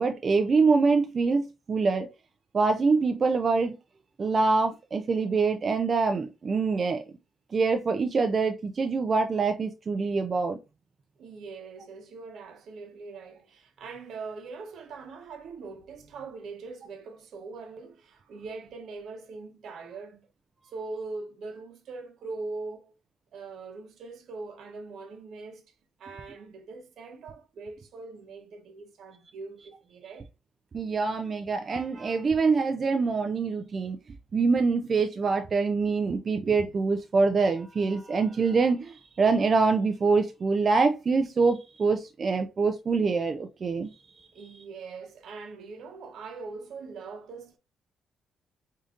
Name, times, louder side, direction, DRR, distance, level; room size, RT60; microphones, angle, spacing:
voice 1, 0.0-2.1 2.5-3.8 4.2-7.0 7.5-10.6 30.7-34.0 34.3-43.9, right 4 dB, 40° right, 0.4 m, -25 dB
voice 2, 11.2-20.3 20.6-22.9 23.3-25.7 26.0-30.3 44.3-47.6, right 4 dB, 70° right, 0.9 m, -42 dB
4.9 x 2.7 x 2.5 m
cardioid pair, 90°, 0 cm